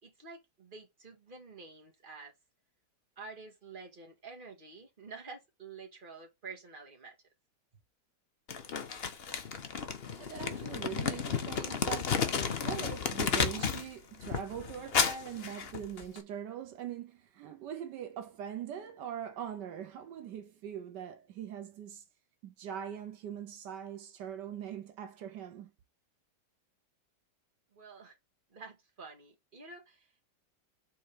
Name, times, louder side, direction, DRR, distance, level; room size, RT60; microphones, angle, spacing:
voice 1, 0.0-2.3 3.2-7.2 27.7-28.2 28.5-30.1, right 4 dB, 30° right, 1.9 m, -49 dB
Crumpling crinkling, 8.5-13.9 14.2-16.2, left 6 dB, 45° left, 0.9 m, -33 dB
voice 2, 10.0-22.0 22.4-25.7, right 9 dB, 80° right, 1.4 m, -42 dB
5.5 x 4.0 x 5.0 m
omnidirectional pair, 1.9 m